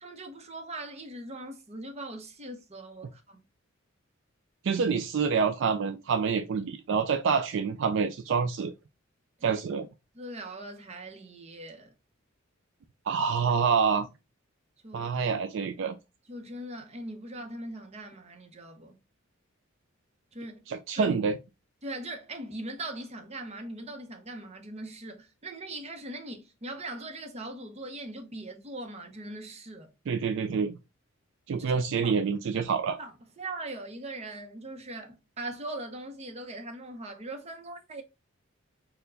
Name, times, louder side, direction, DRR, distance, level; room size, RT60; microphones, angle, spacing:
voice 1, 0.0-3.4 9.4-9.6 10.1-11.9 14.8-15.1 16.3-19.0 20.3-20.6 21.0-21.2 21.8-29.9 31.6-31.7 32.0-32.1 33.0-33.1 33.4-38.0, right 2 dB, 30° right, 0.7 m, -40 dB
voice 2, 4.6-8.7 9.4-9.9 13.1-14.1 14.9-15.9 20.7-21.4 30.1-30.8 31.5-33.0, right 5 dB, 60° right, 0.4 m, -27 dB
4.4 x 2.2 x 3.8 m
head